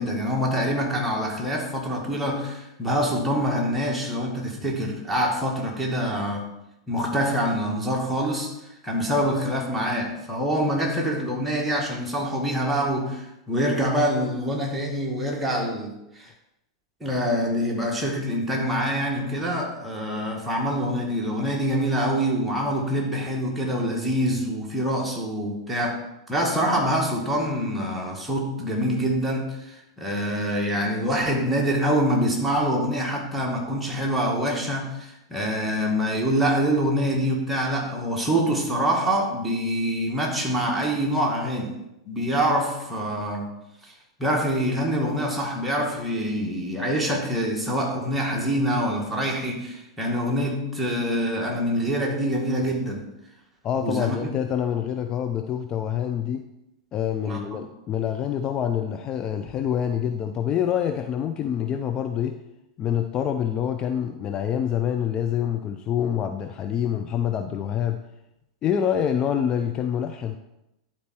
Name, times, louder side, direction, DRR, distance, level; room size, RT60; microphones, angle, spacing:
voice 1, 0.0-6.5 6.9-8.5 8.8-16.3 17.0-26.0 26.3-41.7 42.1-43.5 43.8-43.9 44.2-53.0 53.8-54.3 57.3-57.4, equal, 5° right, -2 dB, 2.0 m, -25 dB
voice 2, 53.6-56.5 56.9-62.4 62.8-68.0 68.6-70.4, left 9 dB, 30° left, 6 dB, 0.5 m, -26 dB
11.0 x 4.4 x 4.4 m, 0.88 s
figure-of-eight pair, 95°, 3 cm